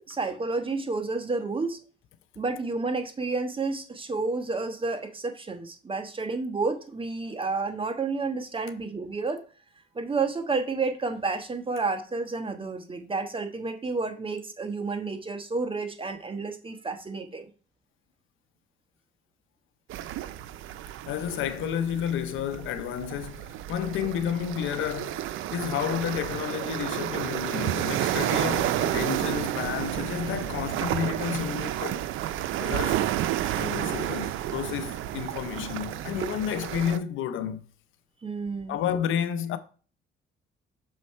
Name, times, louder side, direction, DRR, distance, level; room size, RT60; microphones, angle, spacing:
voice 1, 0.0-1.8 2.4-9.4 9.9-17.5 38.2-38.8, right 3 dB, 25° right, 1.1 m, -30 dB
sound 1, 19.9-37.0, right 13 dB, 85° right, 0.5 m, -31 dB
voice 2, 21.1-32.0 32.6-33.1 33.6-37.7 38.7-39.6, left 9 dB, 80° left, 0.6 m, -31 dB
6.3 x 4.5 x 4.3 m
cardioid pair, 90°, 20 cm